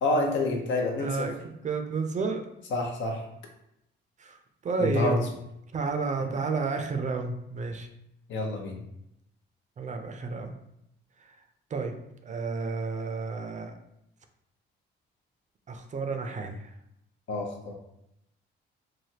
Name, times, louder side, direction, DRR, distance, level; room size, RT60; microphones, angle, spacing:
voice 1, 0.0-1.3 2.7-3.2 4.8-5.3 6.2-6.3 8.3-8.8 17.3-17.8, left 2 dB, 70° left, 2 dB, 0.7 m, -28 dB
voice 2, 1.0-2.4 4.2-4.4 4.6-5.2 5.7-7.9 9.8-10.6 11.7-11.9 12.2-13.7 15.7-16.7, right 4 dB, 40° right, 5 dB, 0.4 m, -31 dB
3.3 x 2.1 x 2.8 m, 0.80 s
cardioid pair, 90°, 20 cm